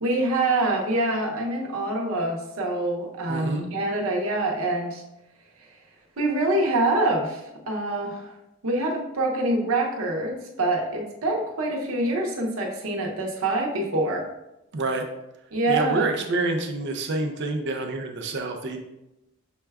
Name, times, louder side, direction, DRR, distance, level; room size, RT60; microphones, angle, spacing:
voice 1, 0.0-5.0 6.2-8.3 8.6-14.3 15.5-16.1, right 2 dB, 75° right, 0 dB, 0.8 m, -25 dB
voice 2, 3.3-3.7 14.7-15.1 15.7-18.8, right 2 dB, 55° right, 4 dB, 0.5 m, -27 dB
6.1 x 2.3 x 3.4 m, 0.91 s
head